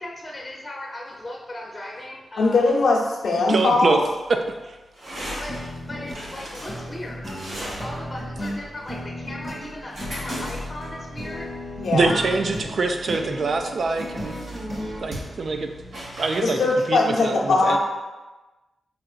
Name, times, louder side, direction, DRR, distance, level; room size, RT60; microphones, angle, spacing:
voice 1, 0.0-2.6 5.0-12.3, left 1 dB, 30° left, -2 dB, 0.6 m, -38 dB
voice 2, 2.4-4.0 11.8-12.1 16.4-17.8, left 3 dB, 90° left, -3 dB, 0.7 m, -20 dB
voice 3, 3.5-4.0 4.3-4.4 4.6-4.8 11.9-14.3 15.0-15.7 16.2-16.6 16.9-17.8, right 3 dB, 65° right, 5 dB, 0.4 m, -24 dB
sound 1, 3.6-16.4, equal, 85° right, 1.3 m, -39 dB
sound 2, 5.5-15.0, equal, 30° right, 1.2 m, -35 dB
4.9 x 2.9 x 2.4 m, 1.1 s
cardioid pair, 60°, 0 cm